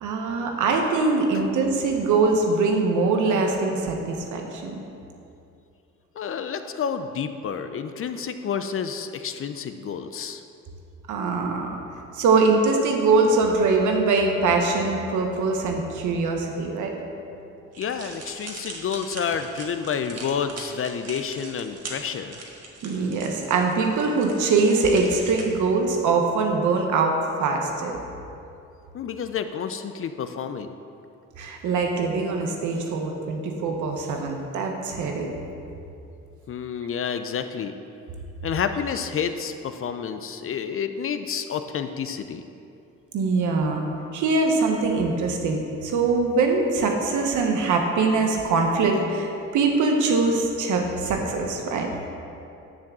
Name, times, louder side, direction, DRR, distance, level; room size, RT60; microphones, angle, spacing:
voice 1, 0.0-4.8 11.1-11.7 12.1-16.9 22.8-28.0 31.4-35.3 43.1-43.8 44.1-51.9, right 3 dB, 80° right, 2 dB, 1.1 m, -23 dB
voice 2, 6.2-10.4 17.8-22.5 28.9-30.7 36.5-37.7 38.4-42.4, left 7 dB, 45° left, 9 dB, 0.5 m, -29 dB
sound 1, 17.7-25.4, right 3 dB, 55° right, 1.5 m, -41 dB
10.5 x 3.6 x 7.3 m, 2.7 s
cardioid pair, 90°, 30 cm